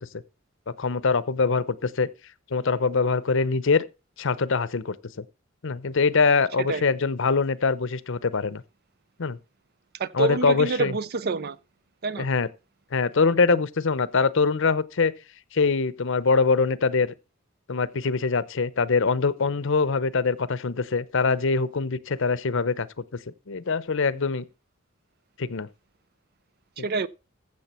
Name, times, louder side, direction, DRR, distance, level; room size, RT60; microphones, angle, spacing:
voice 1, 0.8-2.1 2.5-3.8 4.2-4.9 5.6-8.6 9.2-9.4 10.1-10.9 12.2-12.5 12.9-15.1 15.5-17.1 17.7-23.0 23.5-24.4 25.4-25.7 26.8-26.9, left 4 dB, 65° left, 0.7 m, -23 dB
voice 2, 10.0-11.6 12.0-12.3 26.8-27.1, right 4 dB, 50° right, 0.6 m, -27 dB
15.0 x 6.8 x 4.3 m
head